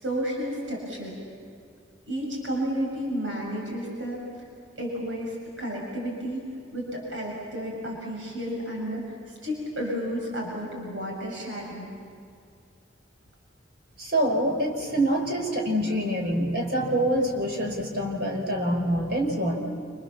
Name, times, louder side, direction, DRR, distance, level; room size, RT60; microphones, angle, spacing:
voice 1, 0.0-1.1 2.1-4.2 4.8-5.3 5.6-6.4 6.7-9.1 9.4-11.9, equal, 90° right, -2 dB, 7.1 m, -31 dB
voice 2, 14.0-19.6, right 1 dB, 60° right, 1 dB, 5.4 m, -25 dB
29.0 x 28.0 x 7.2 m, 2.4 s
head